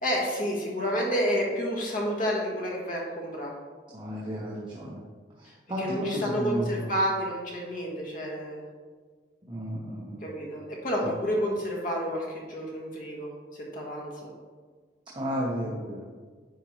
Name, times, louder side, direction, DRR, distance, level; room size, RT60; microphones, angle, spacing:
voice 1, 0.0-3.5 5.8-8.6 10.2-14.3, equal, 50° left, -2 dB, 1.6 m, -30 dB
voice 2, 3.9-5.0 5.4-6.9 9.5-10.2 15.1-16.0, equal, 25° right, -5 dB, 1.0 m, -32 dB
10.0 x 4.4 x 3.2 m, 1.5 s
head